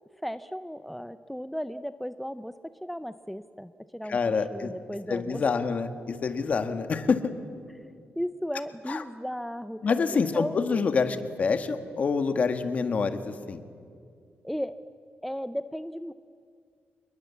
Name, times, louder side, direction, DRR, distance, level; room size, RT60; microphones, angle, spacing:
voice 1, 0.2-4.2 4.5-5.4 7.8-7.9 8.2-9.9 10.1-10.6 14.4-14.8 15.2-16.1, equal, ahead, 11 dB, 0.5 m, -35 dB
voice 2, 4.1-4.7 5.1-7.3 8.9-9.0 9.8-13.6, left 5 dB, 40° left, 9 dB, 1.7 m, -27 dB
27.5 x 21.5 x 8.4 m, 2.3 s
wide cardioid pair, 140°, 4 cm